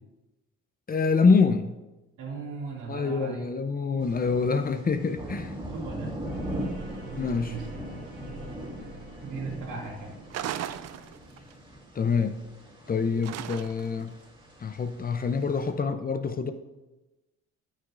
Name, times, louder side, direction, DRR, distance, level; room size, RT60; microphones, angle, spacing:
voice 1, 0.9-1.7 2.9-5.5 7.1-7.6 11.9-12.4 12.9-14.2 14.6-16.5, left 5 dB, 30° left, 9 dB, 0.6 m, -26 dB
voice 2, 2.2-3.4 5.7-6.1 7.4-7.7 9.2-10.1, right 5 dB, 80° right, -3 dB, 2.4 m, -37 dB
sound 1, 4.0-15.7, equal, 15° right, 2.6 m, -40 dB
sound 2, 6.2-11.5, right 2 dB, 40° right, 2.6 m, -45 dB
sound 3, 10.3-11.5 13.2-14.0, right 11 dB, 60° right, 0.4 m, -36 dB
9.7 x 9.1 x 2.5 m, 1.1 s
cardioid pair, 90°, 30 cm